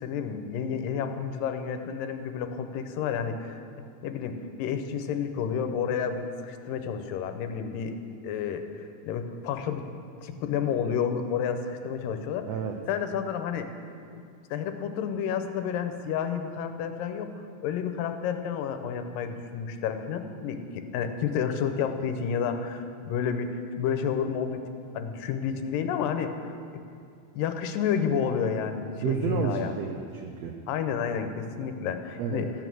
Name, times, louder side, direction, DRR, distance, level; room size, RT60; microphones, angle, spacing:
voice 1, 0.0-3.6 4.0-7.9 8.2-8.7 9.0-9.8 10.2-12.5 12.9-13.7 14.5-17.3 17.6-24.6 24.9-26.5 27.3-29.7 30.7-32.5, left 7 dB, 85° left, 7 dB, 2.5 m, -30 dB
voice 2, 12.5-12.8 29.0-30.6 32.2-32.5, right 7 dB, 85° right, 3 dB, 1.4 m, -30 dB
13.5 x 9.2 x 6.1 m, 2.3 s
omnidirectional pair, 3.9 m